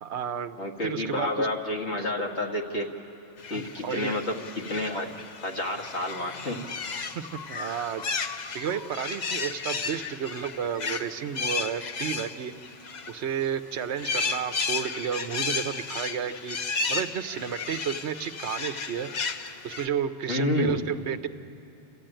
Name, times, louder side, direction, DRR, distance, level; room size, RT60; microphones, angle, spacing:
voice 1, 0.0-1.5 2.0-2.1 3.5-4.2 7.1-8.0 8.5-12.5 13.1-16.6 16.9-19.1 19.6-21.3, right 8 dB, 85° right, 10 dB, 1.1 m, -32 dB
voice 2, 0.6-2.9 3.5-5.1 5.4-6.6 20.3-20.8, left 2 dB, 90° left, -1 dB, 2.1 m, -29 dB
sound 1, 3.4-13.4 13.8-19.9, left 4 dB, 45° left, 0.8 m, -34 dB
29.0 x 14.0 x 9.0 m, 2.9 s
omnidirectional pair, 1.1 m